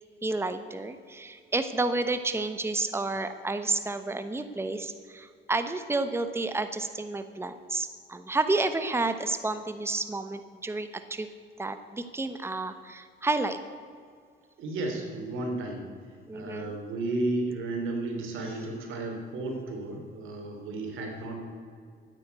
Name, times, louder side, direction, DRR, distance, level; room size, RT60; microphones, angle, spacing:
voice 1, 0.2-11.3 11.6-13.6 16.3-16.8, right 2 dB, 10° right, 9 dB, 1.0 m, -30 dB
voice 2, 14.6-15.9 16.3-21.4, right 2 dB, 90° right, 2 dB, 3.4 m, -33 dB
13.5 x 9.8 x 8.3 m, 2.2 s
cardioid pair, 90°, 20 cm